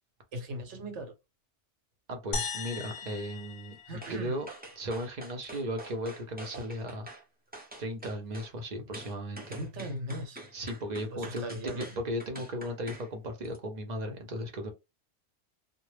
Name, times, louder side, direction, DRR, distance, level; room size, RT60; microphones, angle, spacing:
voice 1, 0.3-1.1 3.9-4.4 9.5-10.4 11.1-11.9, equal, 85° right, 1.1 m, -38 dB
voice 2, 2.1-3.8 4.1-4.5 4.8-7.1 7.8-9.6 10.5-14.7, equal, 45° right, 0.7 m, -36 dB
sound 1, 2.3-4.8, left 4 dB, 65° left, 0.7 m, -38 dB
sound 2, 4.0-4.2 4.5-7.2 7.5-8.5 8.9-13.1 13.4-13.6, right 1 dB, 15° right, 0.4 m, -46 dB
2.2 x 2.0 x 3.2 m
omnidirectional pair, 1.2 m